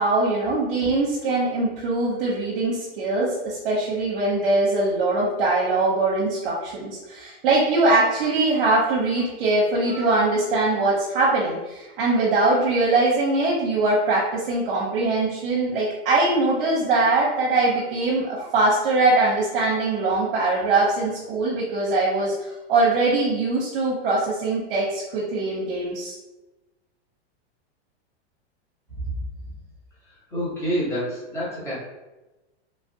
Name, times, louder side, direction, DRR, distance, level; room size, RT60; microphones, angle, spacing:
voice 1, 0.0-26.1, right 2 dB, 55° right, -5 dB, 0.7 m, -22 dB
voice 2, 30.3-31.7, equal, 10° left, -9 dB, 0.9 m, -27 dB
3.1 x 2.4 x 2.7 m, 1.1 s
supercardioid pair, 155°, 33 cm